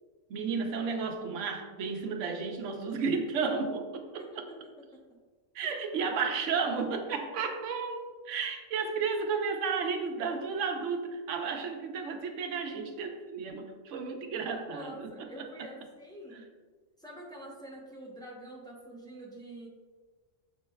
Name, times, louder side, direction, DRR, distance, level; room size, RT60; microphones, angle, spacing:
voice 1, 0.3-4.4 5.5-8.0 8.3-15.3, right 5 dB, 75° right, 5 dB, 0.9 m, -33 dB
voice 2, 4.2-5.2 5.6-6.1 14.7-16.6 17.0-19.7, right 1 dB, 5° left, -4 dB, 0.5 m, -47 dB
7.3 x 3.2 x 2.2 m, 1.4 s
omnidirectional pair, 1.3 m